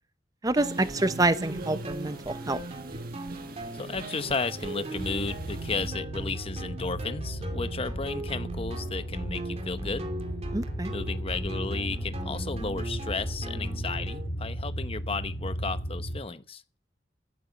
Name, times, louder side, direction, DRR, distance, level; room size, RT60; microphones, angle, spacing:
voice 1, 0.4-2.6 10.5-10.9, right 2 dB, 20° right, 0.8 m, -27 dB
sound 1, 0.6-14.3, right 1 dB, 35° right, 2.5 m, -39 dB
sound 2, 0.6-5.9, right 2 dB, 55° right, 1.5 m, -42 dB
voice 2, 3.7-10.1 10.9-16.6, left 4 dB, 35° left, 0.9 m, -34 dB
sound 3, 4.9-16.2, equal, 60° left, 7.7 m, -35 dB
15.0 x 9.2 x 7.2 m
head